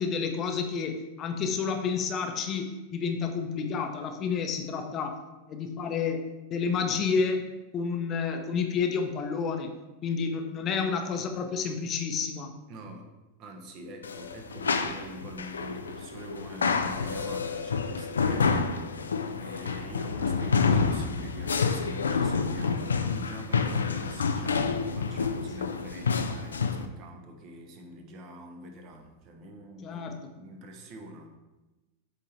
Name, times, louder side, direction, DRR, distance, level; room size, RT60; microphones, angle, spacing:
voice 1, 0.0-5.2 5.5-6.2 6.5-7.4 7.7-9.7 10.0-12.5 29.8-30.3, left 5 dB, 30° left, 5 dB, 0.8 m, -30 dB
voice 2, 12.7-13.0 13.4-18.8 19.4-31.4, right 1 dB, 40° right, 3 dB, 1.1 m, -45 dB
sound 1, 14.0-26.8, left 5 dB, 70° left, 0.4 m, -28 dB
8.1 x 3.8 x 4.4 m, 1.1 s
figure-of-eight pair, 90°, 0 cm